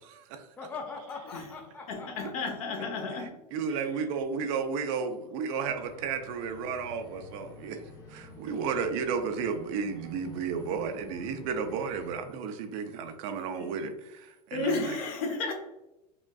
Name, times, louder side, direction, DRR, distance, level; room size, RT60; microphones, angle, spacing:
voice 1, 0.0-0.5 3.1-7.8 8.1-15.0, right 6 dB, 55° right, 7 dB, 0.5 m, -33 dB
voice 2, 0.6-2.6, left 4 dB, 10° left, 2 dB, 0.5 m, -42 dB
voice 3, 1.9-3.3 3.7-3.8 13.6-13.7 14.5-15.5, left 3 dB, 60° left, 2 dB, 1.0 m, -32 dB
sound 1, 5.7-12.1, left 2 dB, 30° left, 1.4 m, -50 dB
4.9 x 2.4 x 2.3 m, 0.92 s
hypercardioid pair, 125°, 21 cm